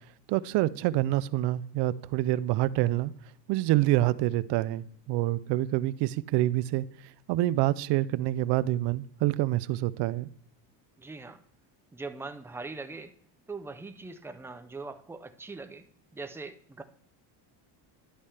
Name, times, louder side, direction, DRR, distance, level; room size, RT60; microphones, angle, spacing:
voice 1, 0.3-3.1 3.5-6.9 7.3-10.3, right 16 dB, 55° right, 0.6 m, -27 dB
voice 2, 11.0-11.4 11.9-13.1 13.5-15.8 16.1-16.8, right 3 dB, 5° right, 0.4 m, -41 dB
11.0 x 8.4 x 3.4 m
cardioid pair, 130°, 50 cm